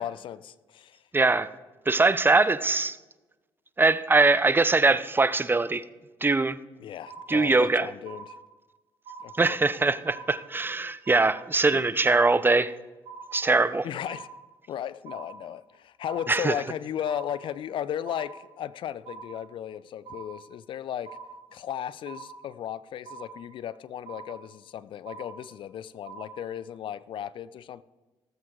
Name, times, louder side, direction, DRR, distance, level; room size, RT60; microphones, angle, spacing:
voice 1, 0.0-1.0 6.8-8.3 9.2-9.6 11.7-11.8 13.8-14.3 14.7-21.2 21.5-27.8, left 10 dB, 60° left, 0.5 m, -35 dB
voice 2, 1.1-1.5 1.9-3.0 3.8-5.8 6.2-6.6 7.3-7.9 9.4-12.7 13.3-13.9 16.3-16.5, right 3 dB, 20° right, 0.6 m, -22 dB
sound 1, 7.1-7.7 8.1-8.7 9.1-9.7 10.1-10.7 11.1-11.7 12.1-12.7 13.1-13.7 14.1-14.7 15.1-15.7 16.1-16.7 17.1-17.7 18.1-18.7 19.0-19.7 20.0-20.7 21.1-21.7 22.1-22.7 23.1-23.7 24.1-24.7 25.1-25.7 26.1-26.7, right 5 dB, 65° right, 2.4 m, -45 dB
17.5 x 7.8 x 3.8 m
supercardioid pair, 65°, 10 cm